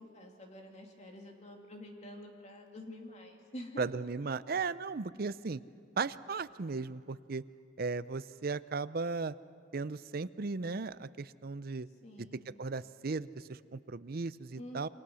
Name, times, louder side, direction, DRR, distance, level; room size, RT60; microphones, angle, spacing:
voice 1, 0.0-3.8 12.0-12.5 14.6-14.9, left 1 dB, 35° left, 2 dB, 2.9 m, -48 dB
voice 2, 3.8-5.6 6.0-7.4 7.8-9.3 9.7-11.9 12.2-12.3 12.6-14.9, right 4 dB, 50° right, 15 dB, 0.6 m, -36 dB
28.5 x 24.5 x 6.3 m, 2.5 s
head